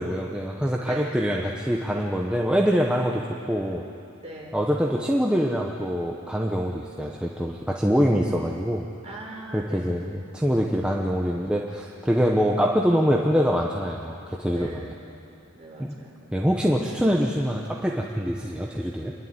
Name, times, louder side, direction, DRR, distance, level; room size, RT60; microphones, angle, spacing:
voice 1, 0.0-3.8 4.5-8.9 9.5-14.9 15.8-16.0 16.3-19.1, equal, 5° right, -1 dB, 0.9 m, -24 dB
voice 2, 0.8-1.3 4.2-4.6 9.0-10.0 14.5-15.1 15.5-16.3, right 1 dB, 30° right, -2 dB, 4.0 m, -41 dB
27.0 x 11.5 x 9.5 m, 2.8 s
head